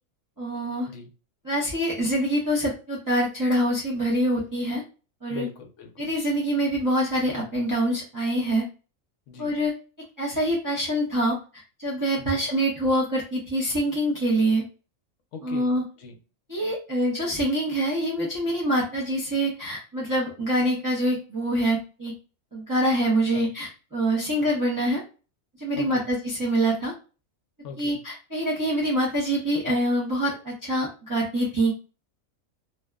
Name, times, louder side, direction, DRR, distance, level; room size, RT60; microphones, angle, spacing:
voice 1, 0.4-0.9 1.4-4.8 5.2-5.4 6.0-8.7 9.4-9.7 10.2-14.6 15.4-15.8 16.5-22.1 22.5-25.0 25.6-26.9 27.8-31.7, right 1 dB, 25° right, -6 dB, 0.5 m, -25 dB
voice 2, 5.3-6.1 9.3-9.5 12.2-12.5 15.3-16.2 23.3-23.5 24.3-24.5 25.8-26.1 27.6-28.0, left 5 dB, 65° left, 4 dB, 0.9 m, -41 dB
2.7 x 2.1 x 2.2 m, 0.34 s
omnidirectional pair, 1.4 m